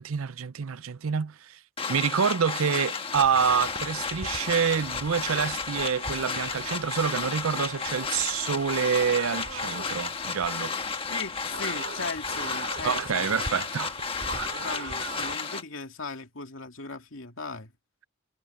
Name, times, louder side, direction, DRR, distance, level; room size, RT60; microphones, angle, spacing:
voice 1, 0.0-1.6 1.9-10.7 12.8-14.0, right 7 dB, 85° right, 0.6 m, -27 dB
sound 1, 1.8-15.6, left 5 dB, 25° left, 1.4 m, -33 dB
sound 2, 3.1-15.4, right 3 dB, 60° right, 2.5 m, -42 dB
voice 2, 11.1-13.4 14.5-17.7, left 3 dB, 75° left, 2.3 m, -38 dB
head